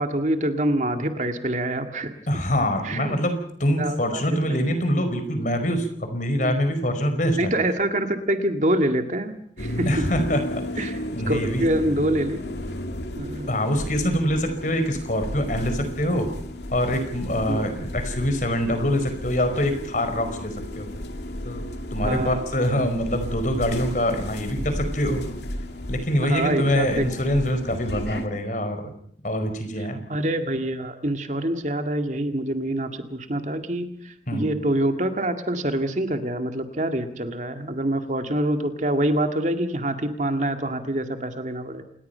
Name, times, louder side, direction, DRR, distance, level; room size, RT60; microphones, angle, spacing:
voice 1, 0.0-2.1 2.8-3.2 3.8-4.2 6.4-6.6 7.4-10.0 10.8-10.9 11.3-12.4 13.1-13.7 17.5-17.7 22.0-22.4 26.2-27.1 30.1-41.8, right 1 dB, 45° right, 6 dB, 2.1 m, -25 dB
voice 2, 2.3-7.5 9.8-11.7 13.5-16.3 16.7-20.9 21.4-25.3 25.9-28.9 29.2-30.0 34.3-34.6, equal, 45° left, 8 dB, 4.9 m, -25 dB
sound 1, 9.6-28.3, left 1 dB, 75° left, 2.6 m, -34 dB
28.0 x 20.0 x 5.7 m, 0.64 s
head